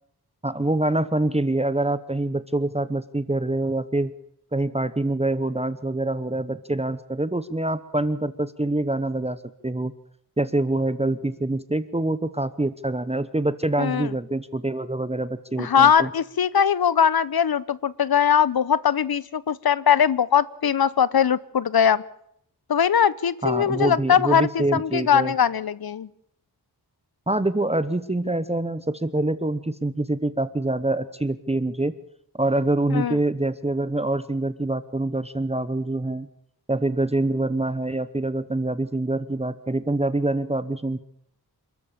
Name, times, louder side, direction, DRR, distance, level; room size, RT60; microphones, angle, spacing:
voice 1, 0.4-4.1 4.5-9.9 10.4-16.1 23.4-25.3 27.3-31.9 32.3-36.3 36.7-41.0, right 2 dB, 15° right, 14 dB, 0.9 m, -25 dB
voice 2, 13.8-14.1 15.6-22.0 22.7-26.1 32.9-33.2, left 8 dB, 65° left, 19 dB, 0.9 m, -21 dB
27.5 x 13.5 x 7.4 m, 0.72 s
wide cardioid pair, 95°, 39 cm